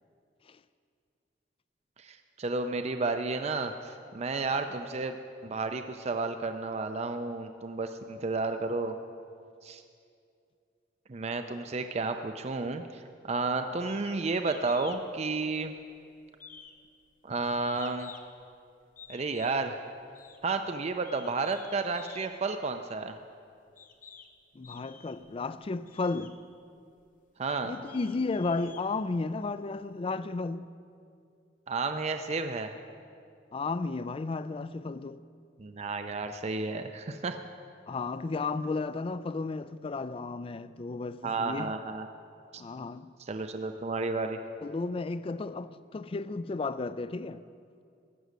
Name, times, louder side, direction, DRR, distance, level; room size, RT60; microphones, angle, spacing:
voice 1, 2.0-5.2 5.4-9.0 9.6-9.8 11.1-15.7 17.2-18.1 19.1-19.8 20.4-23.2 27.4-27.7 31.7-32.7 35.6-37.4 41.2-42.1 42.5-42.6 43.2-44.4, right 3 dB, 35° right, 0.5 m, -32 dB
sound 1, 13.9-14.2 14.4-15.0 15.3-16.0 16.4-18.4 19.0-19.7 20.1-20.4 21.0-22.3 23.1-23.2 23.8-24.3 24.6-25.3 25.9-26.3 27.0-27.1 27.6-29.4, left 6 dB, 50° left, 0.9 m, -51 dB
voice 2, 24.6-26.4 27.6-30.7 33.5-35.2 37.9-41.7 42.6-43.1 44.6-47.4, left 3 dB, 30° left, 0.3 m, -33 dB
14.5 x 6.2 x 9.3 m
head